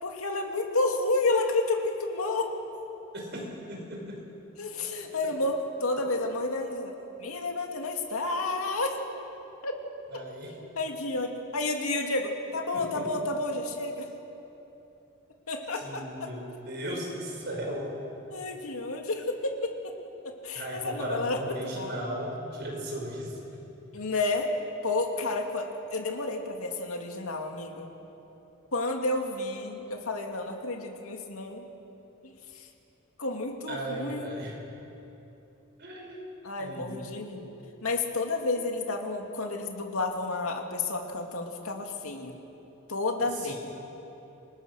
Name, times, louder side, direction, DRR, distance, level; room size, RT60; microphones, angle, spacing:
voice 1, 0.0-2.5 4.6-6.9 7.2-9.0 9.6-9.7 10.5-14.1 15.5-16.3 18.3-19.9 20.4-21.4 21.8-22.0 23.9-24.5 24.8-27.9 28.7-31.7 32.2-32.7 33.2-34.3 36.4-37.5 37.8-42.4 42.9-43.5, left 2 dB, 75° left, 3 dB, 2.4 m, -31 dB
voice 2, 3.1-4.2 10.1-10.6 12.7-13.0 15.7-18.0 20.5-23.6 33.7-34.6 35.8-36.2 36.6-37.1 43.3-43.6, equal, 50° right, -1 dB, 5.6 m, -36 dB
27.5 x 19.5 x 6.3 m, 3.0 s
head